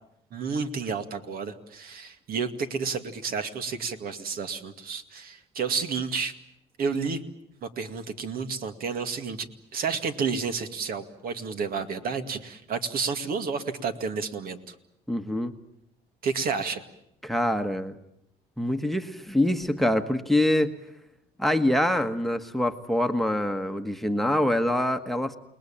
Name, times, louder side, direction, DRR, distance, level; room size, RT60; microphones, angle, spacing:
voice 1, 0.3-6.3 6.8-7.2 7.6-14.7 16.2-16.8, right 5 dB, 60° right, 8 dB, 2.2 m, -31 dB
voice 2, 15.1-15.5 17.2-18.0 18.6-20.8 21.4-25.4, left 1 dB, ahead, 10 dB, 1.3 m, -25 dB
29.0 x 20.0 x 8.8 m, 0.79 s
cardioid pair, 110°, 17 cm